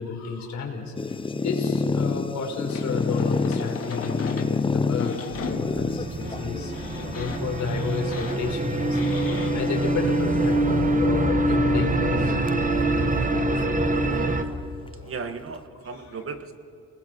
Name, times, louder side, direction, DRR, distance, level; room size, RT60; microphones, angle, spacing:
voice 1, 0.0-13.5 15.0-15.1, left 5 dB, 65° left, 2 dB, 4.4 m, -32 dB
sound 1, 1.0-10.4 11.2-11.7 12.1-12.2 12.5-12.6 13.5-14.6, left 4 dB, 15° left, 0.6 m, -30 dB
sound 2, 2.7-9.5, left 4 dB, 50° left, 2.6 m, -37 dB
sound 3, 5.3-14.4, right 1 dB, 25° right, 1.5 m, -24 dB
voice 2, 15.0-16.5, right 4 dB, 45° right, 8 dB, 1.7 m, -35 dB
30.0 x 20.5 x 4.6 m, 2.8 s
cardioid pair, 90°, 30 cm